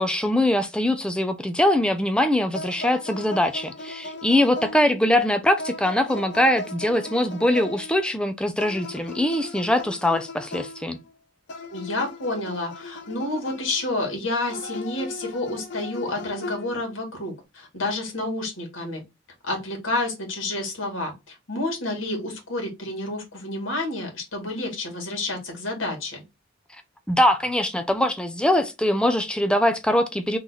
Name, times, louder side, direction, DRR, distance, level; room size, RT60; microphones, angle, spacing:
voice 1, 0.0-11.0 27.1-30.4, left 1 dB, 5° left, 0.4 m, -22 dB
sound 1, 2.5-5.1 5.6-8.0 8.6-11.1 11.5-13.9 14.5-17.0, left 2 dB, 65° left, 0.6 m, -37 dB
voice 2, 11.7-19.0 19.4-26.2, left 2 dB, 85° left, 2.1 m, -29 dB
3.8 x 3.0 x 4.0 m
head